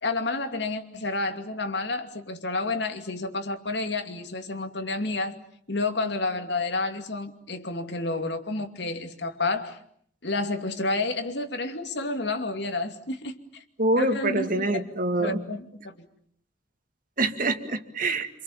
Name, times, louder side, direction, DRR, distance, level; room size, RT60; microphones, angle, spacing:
voice 1, 0.0-5.4 5.7-9.8 10.2-13.6 14.0-14.8 15.2-15.9, left 3 dB, 65° left, 2.7 m, -30 dB
voice 2, 13.8-15.4 17.2-18.3, right 2 dB, 50° right, 2.2 m, -25 dB
28.0 x 27.0 x 7.4 m
head